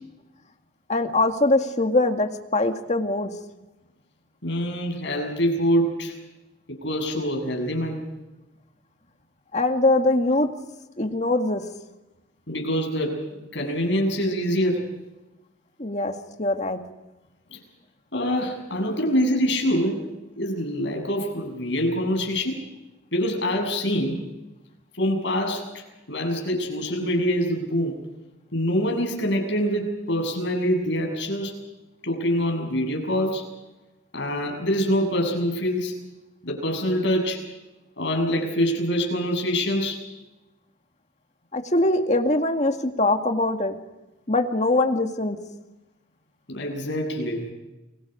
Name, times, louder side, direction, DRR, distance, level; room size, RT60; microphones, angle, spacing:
voice 1, 0.9-3.3 9.5-10.5 11.0-11.6 15.8-16.8 41.5-43.8 44.3-45.4, left 2 dB, 35° left, 4 dB, 2.1 m, -22 dB
voice 2, 4.4-6.1 6.7-8.0 12.5-13.2 13.5-14.8 17.5-17.6 18.1-20.0 20.4-22.6 23.1-24.2 25.0-28.0 28.5-31.5 32.0-33.4 34.1-36.0 36.4-37.4 38.0-40.0 46.5-47.5, equal, 60° left, 2 dB, 7.6 m, -25 dB
30.0 x 23.0 x 5.2 m, 1.0 s
head